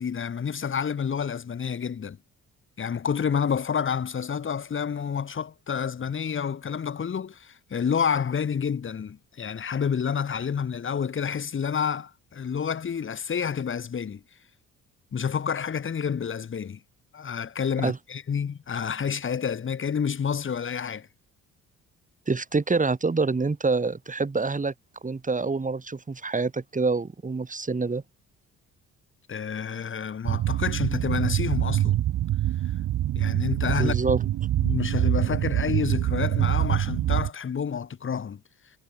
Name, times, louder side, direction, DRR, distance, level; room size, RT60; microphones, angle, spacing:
voice 1, 0.0-2.2 2.8-14.2 15.1-16.8 17.1-21.1 29.3-32.0 33.2-34.0 34.6-38.4, left 7 dB, 40° left, 2.2 m, -29 dB
voice 2, 22.3-24.7 25.0-28.0 33.6-34.2, right 4 dB, 25° right, 7.6 m, -26 dB
sound 1, 30.2-37.3, right 13 dB, 80° right, 3.5 m, -25 dB
cardioid pair, 90°, 30 cm